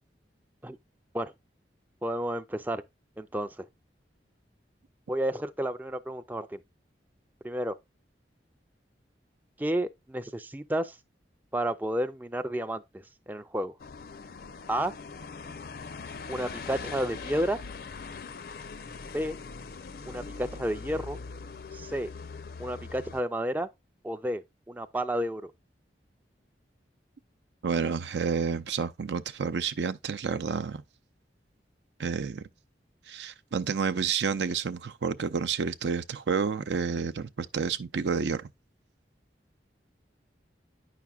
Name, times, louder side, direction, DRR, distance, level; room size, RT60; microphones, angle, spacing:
voice 1, 2.0-2.8 3.2-3.7 5.1-6.6 7.4-7.8 9.6-11.0 11.5-13.7 14.7-14.9 16.3-17.6 19.1-19.4 20.1-21.2 21.7-22.1 22.6-23.7 24.0-25.5, right 1 dB, 10° right, 0.3 m, -31 dB
sound 1, 13.8-23.2, left 4 dB, 55° left, 0.5 m, -41 dB
voice 2, 27.6-30.8 32.0-32.4 33.1-38.5, right 5 dB, 80° right, 0.5 m, -30 dB
9.2 x 5.8 x 2.3 m
head